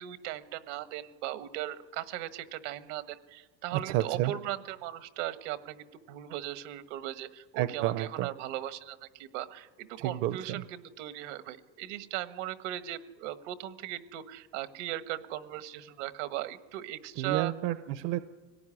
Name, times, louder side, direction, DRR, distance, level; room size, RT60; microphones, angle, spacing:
voice 1, 0.0-17.5, right 13 dB, 80° right, 12 dB, 1.5 m, -38 dB
voice 2, 3.7-4.3 7.6-8.3 10.0-10.6 17.2-18.2, right 14 dB, 65° right, 12 dB, 0.8 m, -30 dB
24.5 x 18.0 x 9.8 m, 1.4 s
cardioid pair, 150°, 36 cm